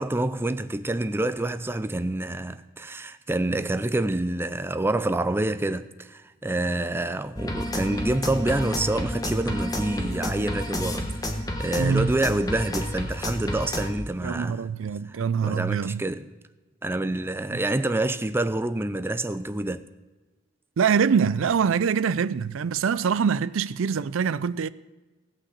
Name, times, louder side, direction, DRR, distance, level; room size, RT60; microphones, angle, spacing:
voice 1, 0.0-11.2 11.6-14.7 15.1-16.3 16.8-19.8, right 2 dB, 10° right, 0.4 m, -27 dB
sound 1, 7.4-13.9, left 1 dB, 20° left, 1.3 m, -30 dB
voice 2, 11.8-12.1 14.2-16.1 17.5-17.6 20.8-24.7, right 6 dB, 70° right, 0.4 m, -24 dB
17.0 x 5.8 x 8.2 m
head